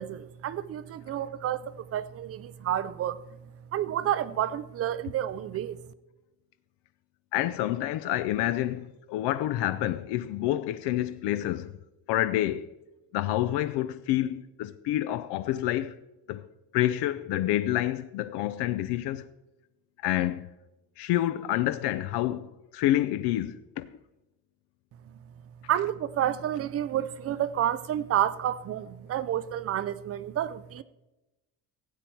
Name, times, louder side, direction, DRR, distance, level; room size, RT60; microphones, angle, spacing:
voice 1, 0.0-3.2 3.7-5.8 25.7-30.8, right 11 dB, 35° right, 0.4 m, -30 dB
voice 2, 7.3-11.7 12.1-12.7 13.1-16.0 16.3-16.5 16.7-19.3 20.0-20.5 21.0-24.0, left 14 dB, 70° left, 0.6 m, -28 dB
16.0 x 8.4 x 4.5 m
cardioid pair, 160°, 42 cm